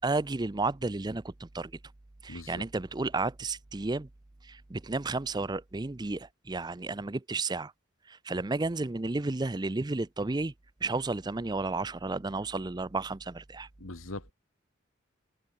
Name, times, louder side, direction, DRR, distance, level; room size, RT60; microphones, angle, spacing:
voice 1, 0.0-1.7 2.2-4.1 4.4-7.7 8.1-10.5 10.8-13.7, right 3 dB, 20° right, 0.5 m, -32 dB
voice 2, 2.3-2.7 13.8-14.3, left 2 dB, 85° left, 2.1 m, -41 dB
head